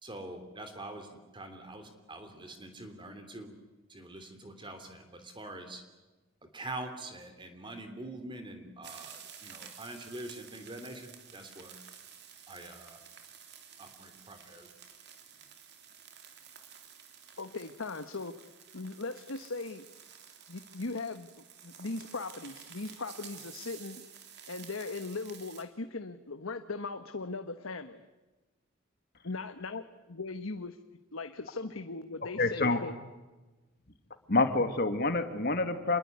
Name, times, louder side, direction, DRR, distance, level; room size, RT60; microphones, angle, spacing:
voice 1, 0.0-3.5 3.9-5.8 6.5-11.7 12.5-13.0 13.8-14.7, right 2 dB, 25° right, 7 dB, 3.1 m, -44 dB
sound 1, 8.8-25.6, right 8 dB, 55° right, 3.5 m, -52 dB
voice 2, 17.4-19.8 20.5-21.3 21.6-24.0 24.5-28.0 29.2-30.8 31.1-32.9, left 3 dB, 75° left, 8 dB, 1.3 m, -39 dB
voice 3, 32.4-32.8 34.3-36.0, left 3 dB, 50° left, 8 dB, 2.6 m, -27 dB
28.0 x 21.5 x 9.5 m, 1.2 s
head